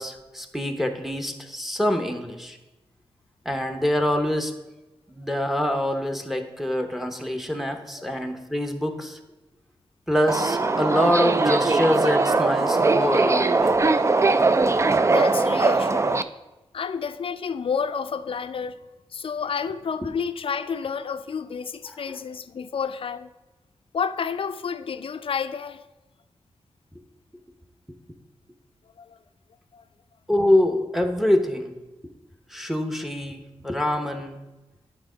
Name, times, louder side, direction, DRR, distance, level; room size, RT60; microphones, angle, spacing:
voice 1, 0.0-2.6 3.4-4.5 5.1-9.2 10.1-13.8 21.9-22.0 30.3-31.8 32.5-34.4, left 1 dB, ahead, 0.9 m, -25 dB
Subway metro underground, 10.3-16.2, right 3 dB, 25° right, 0.4 m, -21 dB
voice 2, 15.1-16.3 16.7-18.8 19.1-23.3 23.9-25.8 29.0-29.2 29.7-29.8, left 6 dB, 60° left, 0.4 m, -30 dB
9.0 x 3.6 x 5.0 m
cardioid pair, 50°, 11 cm